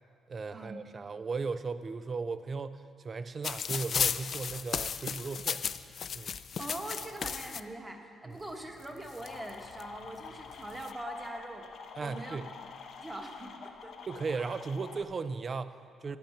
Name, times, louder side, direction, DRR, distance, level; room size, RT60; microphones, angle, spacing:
voice 1, 0.3-5.6 6.1-6.3 8.2-8.4 12.0-12.5 14.1-16.2, right 4 dB, 40° right, 13 dB, 0.5 m, -36 dB
sound 1, 3.4-7.6 8.5-8.6 8.8-9.8 10.5-10.9, left 7 dB, 50° left, 0.3 m, -34 dB
voice 2, 6.6-11.7 12.0-12.4 13.0-14.0 14.3-14.4, right 1 dB, 15° right, 3 dB, 1.2 m, -42 dB
sound 2, 9.2-15.0, left 6 dB, 65° left, 0.7 m, -47 dB
10.0 x 8.8 x 5.9 m, 2.3 s
cardioid pair, 90°, 0 cm